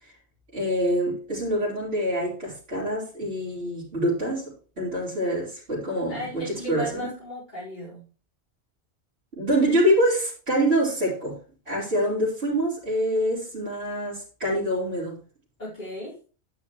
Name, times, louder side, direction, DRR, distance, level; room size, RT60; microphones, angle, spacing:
voice 1, 0.5-7.1 9.3-11.4 11.7-15.2, equal, 65° right, 5.2 m, -25 dB
voice 2, 6.1-8.0 15.6-16.2, right 1 dB, 45° left, 5.1 m, -35 dB
11.5 x 10.0 x 3.2 m
omnidirectional pair, 1.1 m